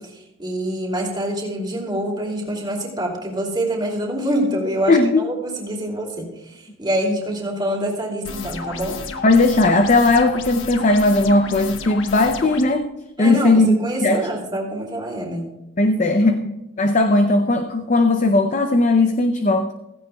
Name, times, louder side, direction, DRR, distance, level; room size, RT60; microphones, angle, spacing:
voice 1, 0.0-9.0 13.2-15.5, right 1 dB, 20° right, -1 dB, 2.6 m, -26 dB
voice 2, 4.9-5.2 9.2-12.9 13.2-14.2 15.8-19.7, left 2 dB, 35° left, 7 dB, 0.5 m, -17 dB
sound 1, 8.2-12.6, left 4 dB, 65° left, 1.2 m, -33 dB
16.0 x 15.5 x 2.3 m, 0.97 s
head